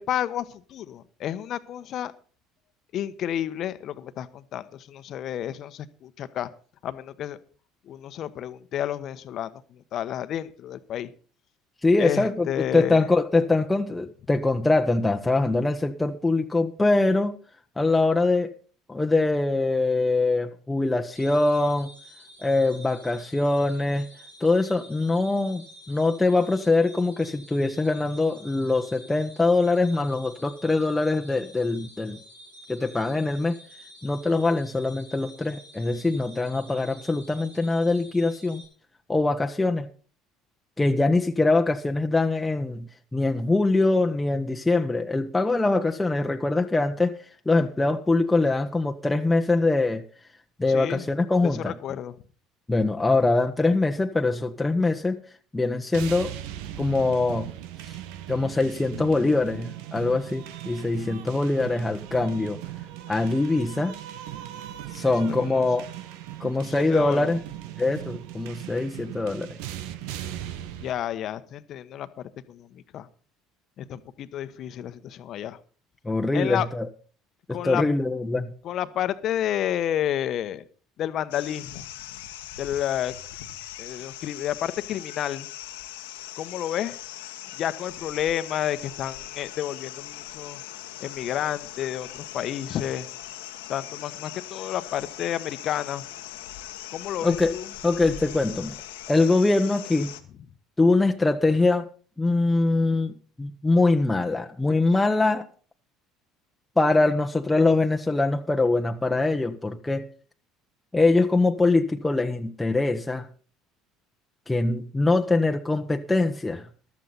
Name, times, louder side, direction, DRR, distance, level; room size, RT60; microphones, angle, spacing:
voice 1, 0.0-2.1 2.9-6.5 6.8-7.4 7.9-11.1 12.0-13.0 50.7-51.1 51.4-52.1 65.4-65.7 66.5-67.3 70.8-72.1 72.5-73.1 73.8-75.6 76.3-76.7 77.5-77.8 78.6-80.6 81.0-81.9 82.6-83.1 83.8-85.5 86.4-87.0 87.5-90.6 91.0-93.1 93.7-96.0 96.9-97.7, left 11 dB, 55° left, 1.1 m, -30 dB
voice 2, 11.8-12.5 12.7-17.3 17.8-18.5 18.9-21.9 22.4-24.1 24.4-32.2 32.7-33.5 34.0-38.6 39.1-39.9 40.8-47.1 47.4-50.0 50.6-51.8 52.7-55.2 55.5-56.3 56.8-57.5 58.3-62.6 63.1-64.0 64.9-65.9 66.4-67.4 67.8-69.6 76.0-76.9 77.5-78.5 97.2-97.5 97.8-98.7 99.1-100.1 100.8-101.9 102.2-105.5 106.8-110.1 110.9-113.3 114.5-116.7, left 2 dB, 15° left, 1.2 m, -23 dB
sound 1, 21.1-38.6, equal, 90° right, 5.5 m, -49 dB
sound 2, 55.9-70.9, right 12 dB, 75° right, 1.1 m, -38 dB
sound 3, 81.3-100.2, left 13 dB, 80° left, 1.3 m, -40 dB
14.5 x 12.0 x 4.1 m
hypercardioid pair, 70°, 0 cm